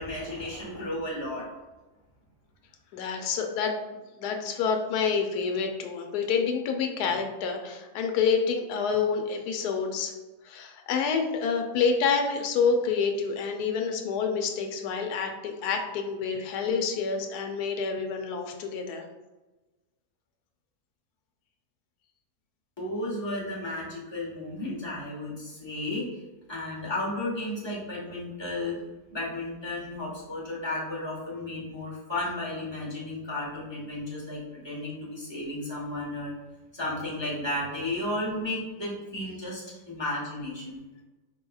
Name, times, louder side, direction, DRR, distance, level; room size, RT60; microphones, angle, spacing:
voice 1, 0.0-1.5 22.8-26.1 26.5-28.8 29.1-36.3 36.7-40.8, left 1 dB, 20° left, -6 dB, 1.1 m, -33 dB
voice 2, 2.9-3.8 4.2-10.1 10.4-19.0, left 5 dB, 90° left, 4 dB, 1.1 m, -28 dB
5.0 x 2.9 x 2.3 m, 1.1 s
omnidirectional pair, 1.6 m